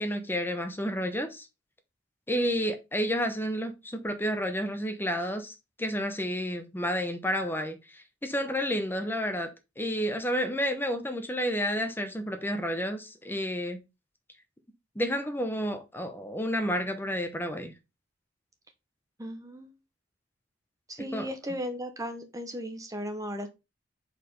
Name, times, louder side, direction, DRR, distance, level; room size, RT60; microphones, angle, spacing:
voice 1, 0.0-1.5 2.3-13.8 14.9-17.7 21.1-21.6, equal, 10° left, 0.9 m, -31 dB
voice 2, 19.2-19.7 20.9-23.5, equal, 20° right, 0.8 m, -36 dB
4.8 x 4.2 x 5.3 m
head